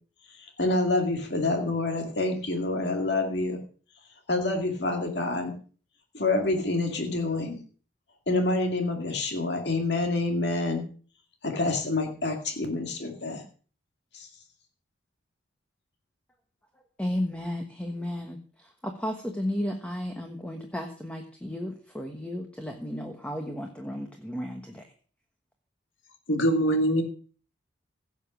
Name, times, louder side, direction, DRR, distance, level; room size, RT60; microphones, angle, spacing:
voice 1, 0.4-3.6 4.3-5.6 6.1-7.6 8.3-10.9 11.4-13.4 14.1-14.3, left 2 dB, 60° left, 3 dB, 2.2 m, -27 dB
voice 2, 17.0-24.9, left 1 dB, 5° left, 3 dB, 1.2 m, -34 dB
voice 3, 26.3-27.0, right 1 dB, 85° left, 5 dB, 2.6 m, -22 dB
16.5 x 7.1 x 6.2 m, 0.41 s
head